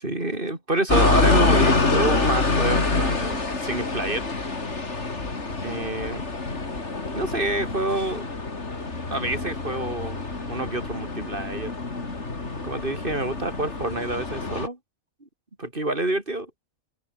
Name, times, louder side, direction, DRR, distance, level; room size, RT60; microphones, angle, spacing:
voice 1, 0.0-4.3 5.6-6.3 7.1-8.3 9.1-11.7 12.6-14.8 15.6-16.5, right 2 dB, 35° right, 4.4 m, -27 dB
sound 1, 0.9-14.7, left 3 dB, 50° left, 3.4 m, -26 dB
open air
omnidirectional pair, 1.5 m